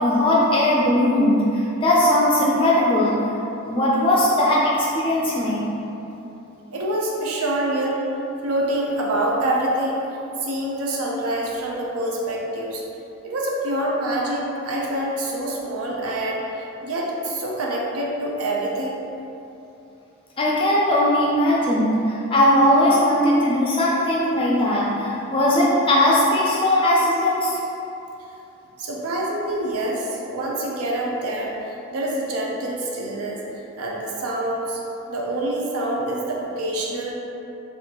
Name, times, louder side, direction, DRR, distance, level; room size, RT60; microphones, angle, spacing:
voice 1, 0.0-5.7 20.4-27.6, left 1 dB, 25° left, -5 dB, 0.3 m, -19 dB
voice 2, 6.7-8.0 8.4-10.0 10.4-12.8 13.2-19.0 28.8-33.4 33.8-34.8 35.1-37.1, right 1 dB, 90° right, -2 dB, 0.5 m, -26 dB
3.4 x 2.5 x 2.8 m, 2.9 s
head